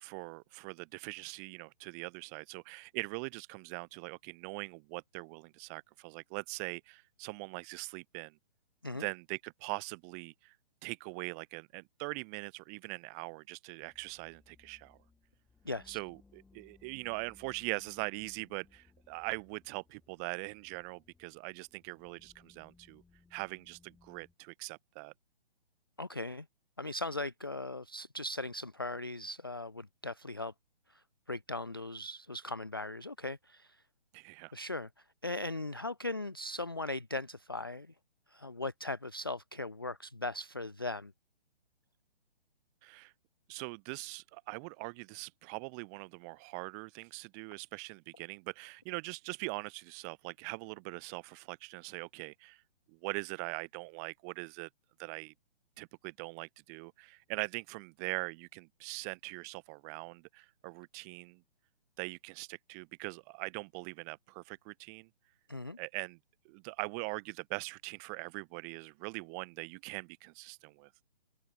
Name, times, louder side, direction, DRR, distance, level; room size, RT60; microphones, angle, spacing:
voice 1, 0.0-8.4 8.9-10.5 10.8-15.0 15.9-23.0 23.3-25.1 34.1-34.5 42.8-43.1 43.5-52.6 52.9-54.7 55.0-55.3 55.8-61.4 62.0-65.1 65.8-66.2 66.5-70.9, right 35 dB, 15° right, 1.7 m, -42 dB
sound 1, 13.8-24.3, left 3 dB, 5° left, 7.6 m, -65 dB
voice 2, 15.7-16.0 26.0-26.5 26.8-30.5 30.9-33.8 34.5-34.9 35.2-37.9 38.3-41.1 65.5-65.8, left 2 dB, 25° left, 0.4 m, -39 dB
open air
hypercardioid pair, 165°, 30 cm